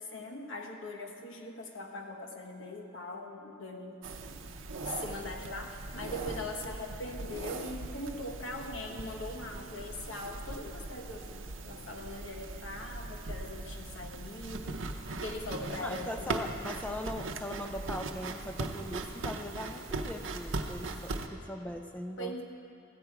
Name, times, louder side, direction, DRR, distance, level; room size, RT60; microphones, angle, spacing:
voice 1, 0.0-4.3 4.8-14.8 15.2-16.5 22.2-22.4, left 1 dB, 80° left, 2 dB, 1.2 m, -41 dB
sound 1, 4.0-21.3, right 3 dB, 80° right, 0.7 m, -40 dB
voice 2, 15.8-22.4, left 1 dB, 5° left, 4 dB, 0.4 m, -40 dB
14.0 x 8.5 x 4.7 m, 2.6 s
head